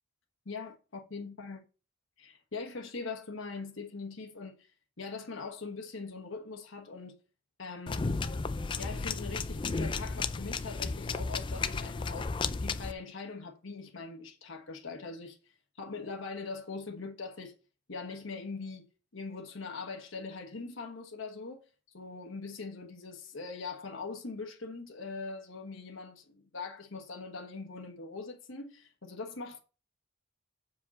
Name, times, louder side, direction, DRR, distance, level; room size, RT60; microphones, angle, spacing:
voice 1, 0.4-1.6 2.2-4.7 5.0-7.2 7.6-8.0 8.8-12.3 12.6-17.5 17.9-18.9 19.1-21.6 21.9-29.6, left 4 dB, 65° left, 1.2 m, -42 dB
sound 1, 7.9-12.9, left 4 dB, 25° left, 0.3 m, -33 dB
7.1 x 4.9 x 4.2 m
head